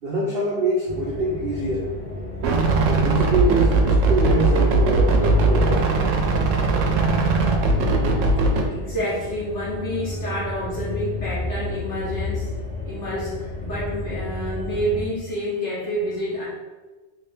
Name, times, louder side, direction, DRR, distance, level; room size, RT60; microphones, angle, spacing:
voice 1, 0.0-1.9 2.8-6.1, right 1 dB, 60° right, -4 dB, 0.7 m, -25 dB
sound 1, 0.8-15.1, left 2 dB, 10° left, 1.1 m, -31 dB
sound 2, 2.4-8.6, right 3 dB, 85° right, 0.9 m, -19 dB
voice 2, 8.7-12.5 12.8-16.5, equal, 65° left, -8 dB, 1.6 m, -28 dB
3.1 x 2.8 x 3.4 m, 1.2 s
omnidirectional pair, 1.3 m